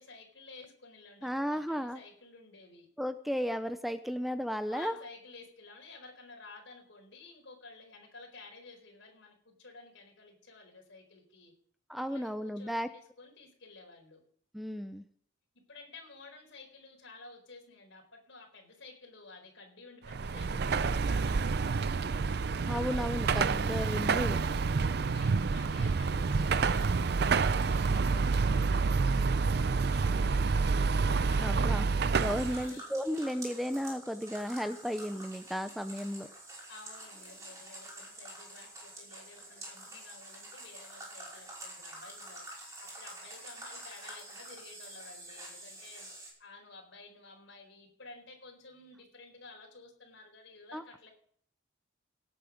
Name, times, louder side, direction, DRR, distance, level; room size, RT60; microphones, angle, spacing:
voice 1, 0.0-2.9 4.7-11.5 12.1-14.2 15.5-22.2 24.8-30.9 31.3-32.2 32.5-32.9 36.7-51.1, left 3 dB, 70° left, 3 dB, 4.4 m, -53 dB
voice 2, 1.2-2.0 3.0-4.9 11.9-12.9 14.5-15.0 22.7-24.5 31.4-31.9 32.1-36.3 50.7-50.8, equal, ahead, 10 dB, 0.5 m, -34 dB
Car passing by / Traffic noise roadway noise / Engine, 20.1-32.7, right 4 dB, 55° right, 0.5 m, -28 dB
sound 1, 32.1-46.3, right 1 dB, 15° right, 5.5 m, -47 dB
18.0 x 8.6 x 5.2 m, 0.62 s
head